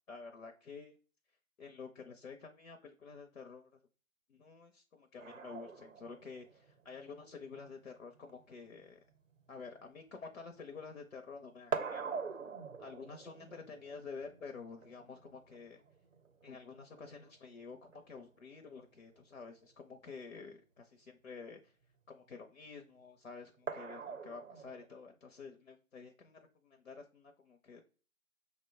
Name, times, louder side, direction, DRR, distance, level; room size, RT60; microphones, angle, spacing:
voice 1, 0.1-1.0 1.6-3.7 4.3-9.0 9.5-12.2 12.8-15.8 16.4-21.7 22.1-27.8, left 5 dB, 60° left, 4 dB, 0.6 m, -50 dB
sound 1, 5.2-10.9 11.2-18.2 19.6-19.7 20.1-20.2 23.7-24.9, right 5 dB, 65° right, 0.6 m, -45 dB
5.9 x 2.2 x 3.4 m, 0.39 s
figure-of-eight pair, 160°, 42 cm